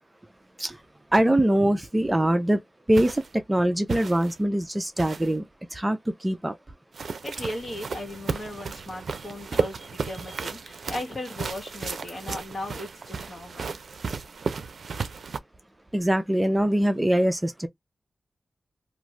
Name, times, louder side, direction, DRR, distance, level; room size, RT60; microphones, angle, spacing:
voice 1, 1.1-2.6 2.9-5.4 5.7-6.6 15.9-17.7, right 1 dB, 20° right, 0.5 m, -23 dB
sound 1, 2.9-3.3 3.9-4.4 5.0-5.4 6.9-15.4, right 5 dB, 75° right, 0.4 m, -34 dB
voice 2, 7.0-13.7, left 1 dB, 50° left, 1.4 m, -37 dB
2.5 x 2.4 x 3.0 m
wide cardioid pair, 85°, 0 cm